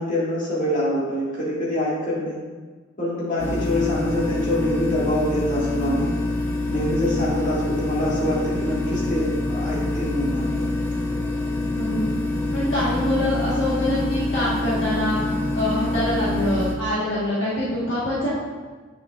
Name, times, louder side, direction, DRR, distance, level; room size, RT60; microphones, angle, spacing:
voice 1, 0.0-2.4 3.0-6.1 6.7-10.7, left 1 dB, 40° left, -7 dB, 2.1 m, -25 dB
sound 1, 3.4-16.7, left 2 dB, 10° left, 0.8 m, -26 dB
voice 2, 11.7-12.1 12.5-15.3 15.5-18.3, left 1 dB, 55° left, -9 dB, 1.6 m, -24 dB
8.7 x 6.6 x 2.5 m, 1.4 s
head